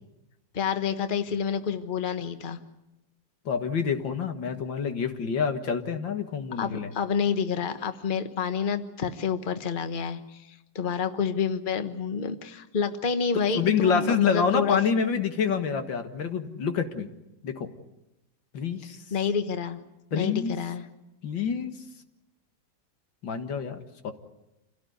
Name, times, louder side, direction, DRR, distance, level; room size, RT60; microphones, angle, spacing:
voice 1, 0.5-2.6 6.6-10.5 10.7-14.8 19.1-19.8 20.1-20.9, left 6 dB, 30° left, 9 dB, 1.3 m, -28 dB
voice 2, 3.5-6.9 13.6-17.1 17.4-17.7 18.5-19.0 20.1-20.6 21.2-21.8 23.2-23.8 24.0-24.1, left 6 dB, 90° left, 7 dB, 2.4 m, -27 dB
27.5 x 17.0 x 9.5 m, 0.94 s
omnidirectional pair, 2.0 m